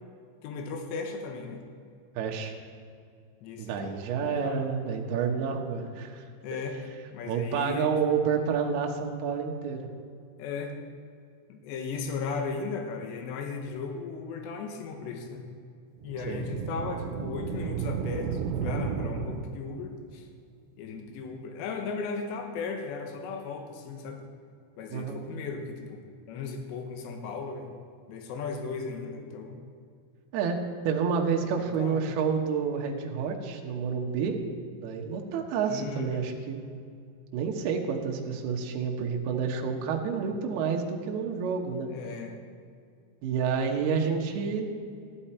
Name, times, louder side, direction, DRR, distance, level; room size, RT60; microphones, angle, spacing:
voice 1, 0.4-1.6 3.4-4.6 6.4-6.8 7.1-7.9 10.4-10.8 11.5-15.5 16.0-20.3 20.8-24.2 24.8-26.0 26.3-27.7 28.1-29.6 31.5-32.0 35.7-36.3 41.9-42.3, left 4 dB, 80° left, 4 dB, 3.3 m, -36 dB
voice 2, 2.2-2.5 3.6-6.2 7.3-9.9 16.3-16.4 24.9-25.2 30.3-30.6 30.8-34.4 34.8-36.6 37.3-41.9 43.2-44.7, right 6 dB, 70° right, 1 dB, 2.8 m, -29 dB
sound 1, 16.0-19.9, right 7 dB, 90° right, 2.9 m, -33 dB
14.5 x 12.0 x 4.4 m, 2.3 s
omnidirectional pair, 5.1 m